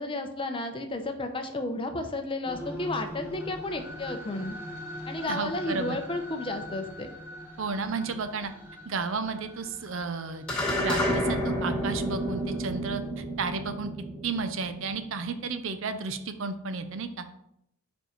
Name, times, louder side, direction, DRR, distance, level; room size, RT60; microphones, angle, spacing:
voice 1, 0.0-4.6 5.1-7.1, left 2 dB, 25° left, 6 dB, 0.6 m, -32 dB
sound 1, 2.4-12.6, equal, 10° right, 1.1 m, -43 dB
voice 2, 5.3-6.0 7.6-8.5 8.9-10.4 10.8-13.9 14.2-17.4, right 4 dB, 65° right, 9 dB, 0.6 m, -33 dB
sound 2, 10.5-15.1, equal, 5° left, 2.4 m, -30 dB
5.2 x 4.5 x 5.1 m, 0.76 s
head